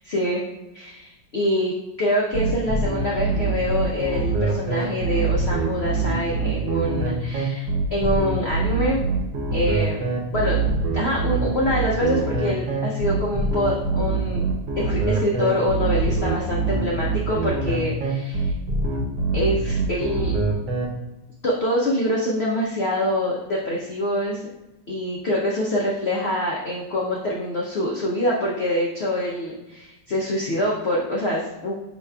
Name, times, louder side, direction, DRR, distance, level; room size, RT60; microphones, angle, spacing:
voice 1, 0.1-0.4 0.7-1.7 2.0-9.0 9.5-10.0 10.3-10.6 10.9-14.4 14.8-18.5 19.3-20.3 21.4-24.4 24.9-31.7, left 1 dB, 65° left, -4 dB, 0.6 m, -25 dB
sound 1, 2.3-20.8, right 3 dB, 75° right, 1.3 m, -24 dB
5.3 x 4.0 x 2.3 m, 0.98 s
omnidirectional pair, 2.0 m